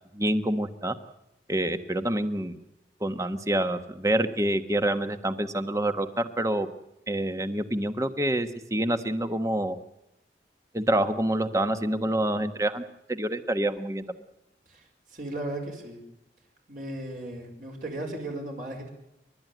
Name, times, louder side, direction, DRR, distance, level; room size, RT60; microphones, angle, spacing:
voice 1, 0.1-0.9 1.5-2.6 3.0-6.7 7.1-9.8 10.7-12.8 13.1-14.0, right 1 dB, 20° right, 9 dB, 1.2 m, -27 dB
voice 2, 14.7-16.0 16.7-18.9, right 1 dB, 50° right, 1 dB, 5.1 m, -36 dB
30.0 x 12.5 x 9.3 m, 0.88 s
head